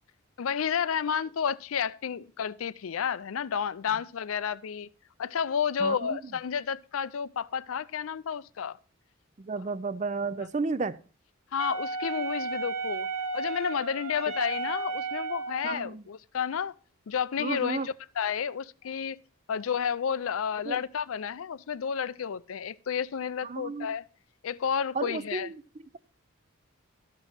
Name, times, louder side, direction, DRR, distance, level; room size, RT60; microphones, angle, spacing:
voice 1, 0.4-4.9 5.2-8.8 11.5-13.1 13.3-16.7 17.1-19.2 19.5-24.1 24.4-25.5, left 7 dB, 80° left, 0.4 m, -31 dB
voice 2, 5.8-6.2 9.4-11.0 15.6-16.0 17.4-17.9 20.7-20.8 23.4-23.9 24.9-26.0, right 4 dB, 35° right, 0.4 m, -33 dB
Wind instrument woodwind instrument, 11.6-15.8, right 4 dB, 80° right, 1.1 m, -33 dB
13.0 x 6.1 x 5.6 m
head